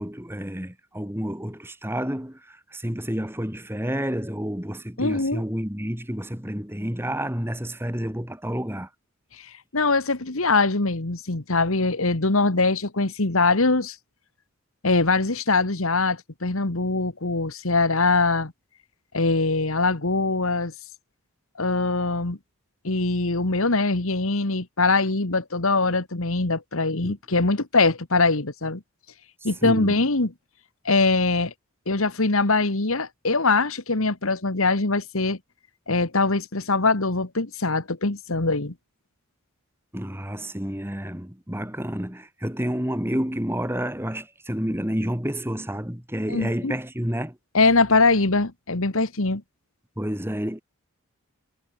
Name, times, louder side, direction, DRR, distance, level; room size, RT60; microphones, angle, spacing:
voice 1, 0.0-8.9 27.0-27.1 29.6-30.0 39.9-47.4 50.0-50.6, equal, 10° right, 2.2 m, -29 dB
voice 2, 5.0-5.4 9.4-13.9 14.8-18.5 19.1-20.7 21.6-22.4 22.8-28.8 29.4-30.3 30.8-31.5 31.9-35.4 35.9-38.7 46.3-46.7 47.5-49.4, left 3 dB, 70° left, 1.8 m, -22 dB
head